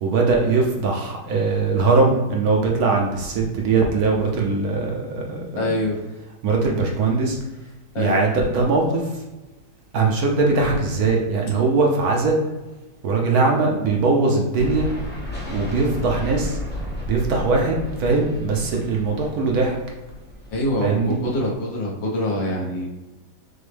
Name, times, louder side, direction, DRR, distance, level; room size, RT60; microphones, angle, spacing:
voice 1, 0.0-5.7 6.4-7.4 8.0-9.2 9.9-12.4 13.0-14.9 15.5-16.6 17.1-19.8 20.8-21.2, right 3 dB, 65° right, 0 dB, 1.1 m, -21 dB
voice 2, 5.5-6.0 7.9-8.2 13.3-13.5 20.5-22.9, left 1 dB, 85° left, -3 dB, 1.8 m, -25 dB
sound 1, 14.5-21.5, left 1 dB, 15° left, 0.3 m, -33 dB
6.1 x 2.1 x 3.3 m, 1.1 s
omnidirectional pair, 1.9 m